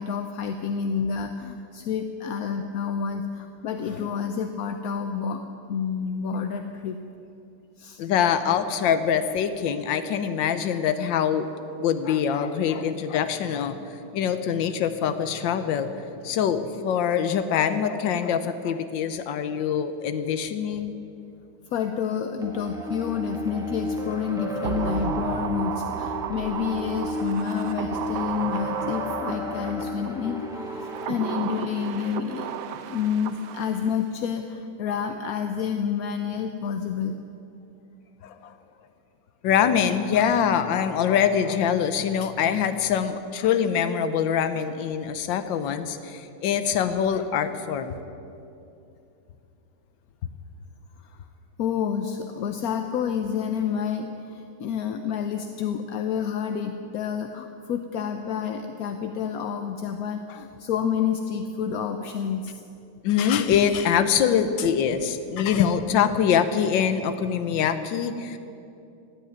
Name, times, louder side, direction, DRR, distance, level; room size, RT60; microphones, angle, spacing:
voice 1, 0.0-5.4 5.7-7.0 7.8-8.0 21.7-32.5 32.9-37.2 51.1-51.2 51.6-62.6, left 7 dB, 65° left, 7 dB, 1.0 m, -29 dB
voice 2, 8.0-11.5 11.8-13.7 14.1-15.9 16.2-21.0 38.2-38.5 39.4-48.0 60.3-60.4 63.0-68.4, left 8 dB, 90° left, 10 dB, 1.5 m, -24 dB
sound 1, 22.4-31.7, equal, ahead, 0.9 m, -33 dB
sound 2, 24.6-30.1 30.7-34.0 34.2-34.3, right 9 dB, 70° right, 1.2 m, -33 dB
15.5 x 8.2 x 9.4 m, 2.6 s
omnidirectional pair, 2.0 m